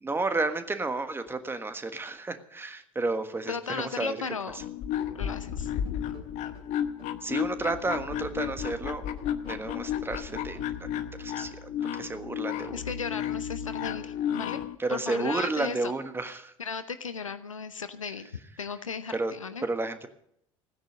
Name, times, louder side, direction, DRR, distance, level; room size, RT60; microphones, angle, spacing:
voice 1, 0.0-4.2 4.5-4.6 7.2-9.1 9.5-10.9 11.2-12.8 14.8-16.5 19.1-19.3 19.6-20.1, right 3 dB, 15° right, 9 dB, 1.4 m, -32 dB
voice 2, 3.5-4.6 5.1-5.7 12.7-14.6 14.9-15.9 16.6-18.3 18.6-19.7, left 5 dB, 80° left, 11 dB, 0.8 m, -36 dB
sound 1, 4.5-14.8, left 9 dB, 50° left, 0.9 m, -33 dB
sound 2, 5.0-8.9 9.2-11.2, right 2 dB, 35° right, 2.9 m, -56 dB
16.5 x 9.8 x 6.5 m, 0.73 s
figure-of-eight pair, 65°, 16 cm